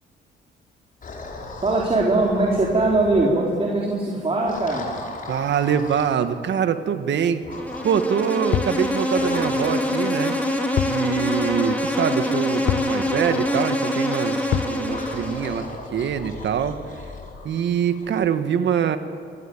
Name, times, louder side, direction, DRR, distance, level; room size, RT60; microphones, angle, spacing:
sound 1, 1.0-3.3 4.4-6.2 7.4-8.1 9.1-10.0 10.8-11.9 12.5-13.5 14.5-18.3, left 3 dB, 40° left, 5.1 m, -38 dB
voice 1, 1.6-4.9, right 2 dB, 30° right, -3 dB, 4.3 m, -21 dB
voice 2, 5.3-7.4 7.8-10.4 10.9-15.7 15.9-16.8 17.4-19.0, right 8 dB, 65° right, 9 dB, 1.7 m, -24 dB
Insect, 7.5-15.7, left 1 dB, 5° left, 4.4 m, -25 dB
sound 2, 8.5-8.8 10.8-11.0 11.4-11.5 12.7-13.0 14.5-14.8, left 13 dB, 65° left, 0.5 m, -24 dB
26.5 x 20.0 x 8.9 m, 2.5 s
cardioid pair, 90°, 20 cm